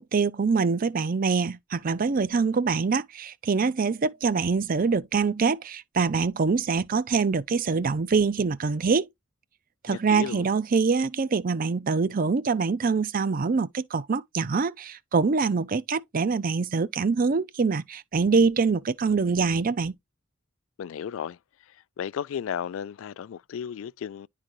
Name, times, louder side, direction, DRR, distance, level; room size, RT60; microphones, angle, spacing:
voice 1, 0.0-9.1 9.8-19.9, right 4 dB, 45° right, 0.5 m, -24 dB
voice 2, 9.9-10.5 20.8-21.4 22.0-24.3, left 8 dB, 75° left, 0.3 m, -34 dB
10.5 x 3.8 x 3.0 m
head